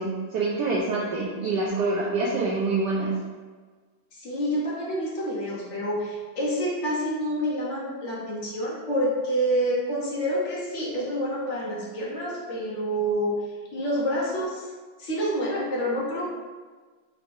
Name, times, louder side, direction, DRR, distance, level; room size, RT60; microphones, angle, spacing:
voice 1, 0.0-3.1, right 3 dB, 75° right, -4 dB, 1.0 m, -26 dB
voice 2, 4.1-13.4 13.7-14.7 15.0-16.3, equal, 60° left, -5 dB, 0.7 m, -28 dB
4.6 x 3.3 x 2.5 m, 1.4 s
omnidirectional pair, 2.2 m